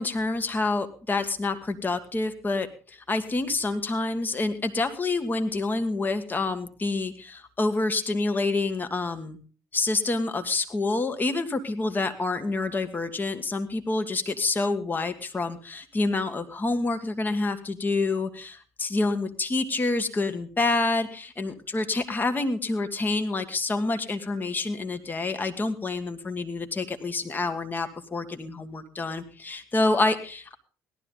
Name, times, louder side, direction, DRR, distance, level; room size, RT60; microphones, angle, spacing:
voice 1, 0.0-9.4 9.7-30.5, left 3 dB, 25° left, 7 dB, 1.5 m, -27 dB
17.5 x 12.0 x 3.9 m, 0.36 s
figure-of-eight pair, 55°, 8 cm